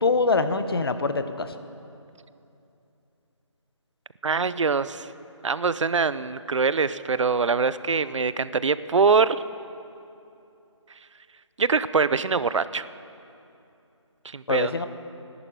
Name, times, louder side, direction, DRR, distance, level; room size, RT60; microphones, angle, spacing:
voice 1, 0.0-1.5 14.5-14.9, left 3 dB, 50° left, 10 dB, 0.7 m, -24 dB
voice 2, 4.2-5.1 5.4-9.4 11.6-12.9 14.2-14.7, right 5 dB, 70° right, 15 dB, 0.5 m, -23 dB
17.5 x 11.0 x 4.6 m, 2.7 s
figure-of-eight pair, 170°, 16 cm